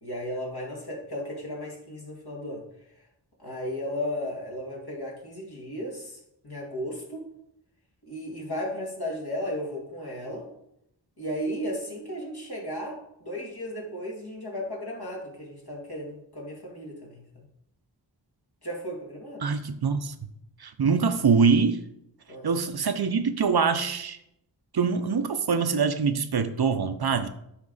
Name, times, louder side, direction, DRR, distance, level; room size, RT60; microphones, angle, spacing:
voice 1, 0.0-2.6 3.4-7.3 8.0-10.5 11.2-17.4 18.6-19.5 22.3-22.5, equal, 55° left, -2 dB, 2.3 m, -35 dB
voice 2, 19.4-20.1 20.6-21.8 22.4-24.2 24.7-27.3, right 5 dB, 55° right, 9 dB, 0.6 m, -24 dB
9.7 x 3.3 x 4.0 m, 0.78 s
cardioid pair, 40°, 44 cm